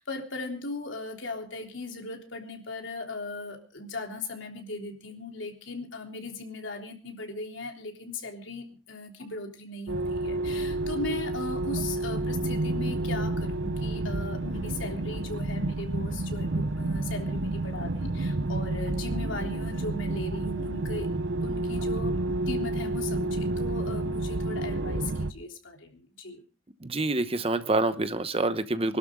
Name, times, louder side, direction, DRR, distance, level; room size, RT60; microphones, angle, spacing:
voice 1, 0.0-21.1 21.4-26.4, left 2 dB, 80° left, 3 dB, 3.4 m, -38 dB
sound 1, 9.9-25.3, right 2 dB, 75° right, 0.9 m, -30 dB
voice 2, 26.8-29.0, right 2 dB, 30° right, 12 dB, 0.9 m, -27 dB
25.0 x 12.0 x 3.7 m, 0.35 s
head